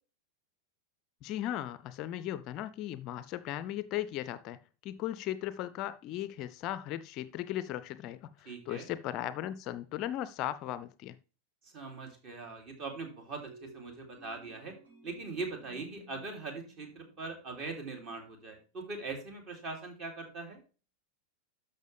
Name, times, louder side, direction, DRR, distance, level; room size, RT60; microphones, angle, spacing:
voice 1, 1.2-11.2, left 13 dB, 40° left, 0.4 m, -37 dB
voice 2, 8.4-8.9 11.6-14.7 15.0-20.6, right 3 dB, 35° right, 3.0 m, -41 dB
sound 1, 13.4-18.1, right 1 dB, 65° right, 5.3 m, -57 dB
12.5 x 5.6 x 3.4 m
figure-of-eight pair, 90°, 0 cm